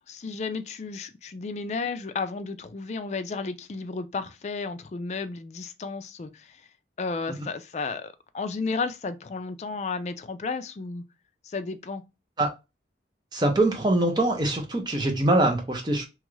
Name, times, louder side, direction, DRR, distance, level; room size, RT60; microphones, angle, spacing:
voice 1, 0.1-6.7 7.0-11.0 11.4-12.0, left 4 dB, 40° left, 0.3 m, -33 dB
voice 2, 13.3-16.0, right 1 dB, 25° right, 0.6 m, -23 dB
3.0 x 2.4 x 3.1 m
head